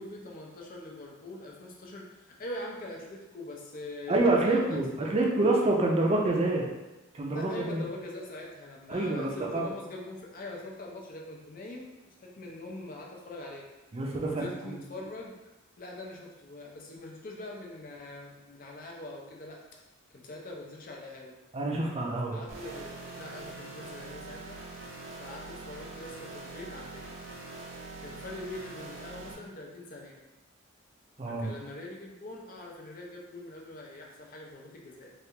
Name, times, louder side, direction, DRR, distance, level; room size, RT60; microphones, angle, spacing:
voice 1, 0.0-5.4 7.3-11.9 12.2-13.7 14.2-15.4 15.8-19.6 20.1-21.4 22.3-24.6 25.2-27.0 28.0-30.2 31.3-35.1, left 2 dB, 45° left, -1 dB, 0.5 m, -43 dB
voice 2, 4.1-6.7 7.1-7.8 8.9-9.7 13.9-14.8 21.5-22.4 31.2-31.5, right 2 dB, 30° right, -1 dB, 0.5 m, -27 dB
sound 1, 22.5-29.3, right 3 dB, 85° right, 0.7 m, -43 dB
3.2 x 2.4 x 2.8 m, 1.0 s
head